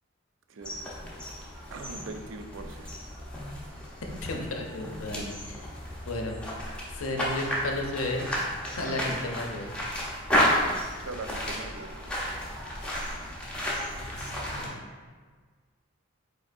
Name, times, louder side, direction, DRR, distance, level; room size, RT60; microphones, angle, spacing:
voice 1, 0.5-1.1 1.7-3.2 5.1-5.4 9.7-9.8 11.0-12.1, right 3 dB, 70° right, 5 dB, 0.4 m, -41 dB
sound 1, 0.6-14.7, equal, 5° left, 0.6 m, -32 dB
voice 2, 4.2-5.6 6.1-6.4 6.9-8.3 8.8-9.7 14.0-14.8, left 2 dB, 85° left, 2 dB, 0.7 m, -33 dB
5.1 x 4.1 x 2.6 m, 1.5 s
head